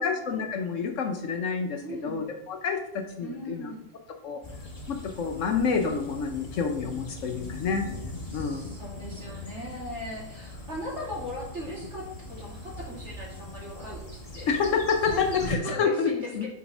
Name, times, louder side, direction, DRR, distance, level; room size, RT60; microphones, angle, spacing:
voice 1, 0.0-3.7 4.2-4.4 4.9-7.9 8.3-8.8 14.5-16.5, left 5 dB, 65° left, 4 dB, 0.9 m, -28 dB
voice 2, 1.7-2.2 3.2-3.8 8.3-14.5 15.1-16.5, left 1 dB, 50° right, -5 dB, 2.7 m, -39 dB
sound 1, 4.4-15.6, left 2 dB, 30° left, 1.1 m, -40 dB
5.9 x 4.0 x 5.2 m, 0.80 s
omnidirectional pair, 1.5 m